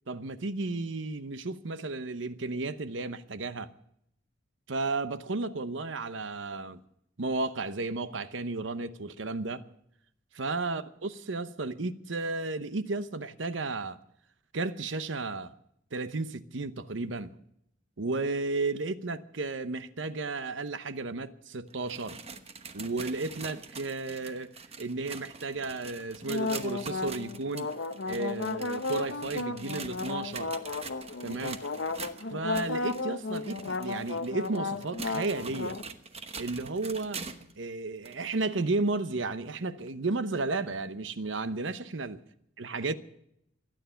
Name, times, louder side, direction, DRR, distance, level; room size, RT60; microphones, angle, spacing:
voice 1, 0.1-3.7 4.7-6.8 7.2-9.6 10.3-14.0 14.5-15.5 15.9-17.3 18.0-22.2 22.7-27.7 28.1-30.5 31.2-31.6 32.3-35.8 36.4-37.2 37.6-42.2 42.6-42.9, right 3 dB, 75° right, 0.9 m, -33 dB
sound 1, 21.7-37.6 38.0-38.2 38.9-39.0 39.9-40.0, right 5 dB, 35° right, 1.1 m, -44 dB
sound 2, 26.2-35.8, left 3 dB, 70° left, 0.8 m, -34 dB
25.0 x 9.4 x 5.7 m
head